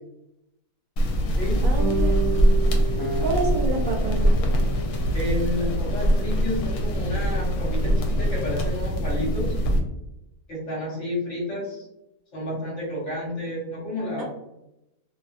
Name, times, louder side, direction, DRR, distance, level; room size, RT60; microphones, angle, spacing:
sound 1, 1.0-9.8, equal, 80° left, 1.1 m, -23 dB
voice 1, 1.6-2.4 3.2-4.5 14.2-14.3, right 3 dB, 65° right, -1 dB, 0.9 m, -29 dB
sound 2, 1.8-4.3, right 6 dB, 30° right, 0.3 m, -31 dB
Acoustic guitar, 3.0-6.2, left 1 dB, 25° left, 1.2 m, -36 dB
voice 2, 5.1-9.5 10.5-11.8 12.3-14.2, left 1 dB, 50° left, -5 dB, 1.4 m, -30 dB
2.6 x 2.5 x 2.4 m, 0.88 s
omnidirectional pair, 1.7 m